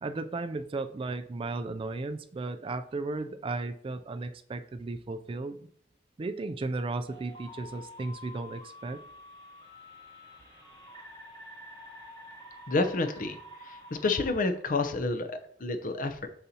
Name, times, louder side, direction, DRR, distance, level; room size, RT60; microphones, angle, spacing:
voice 1, 0.0-5.6 6.2-9.0, right 3 dB, 30° right, 10 dB, 0.3 m, -35 dB
sound 1, 7.1-14.3, left 1 dB, 25° left, 1.7 m, -48 dB
voice 2, 12.7-13.4 13.6-13.8 14.0-16.3, left 3 dB, 50° left, 8 dB, 0.6 m, -29 dB
6.6 x 5.7 x 2.8 m, 0.64 s
head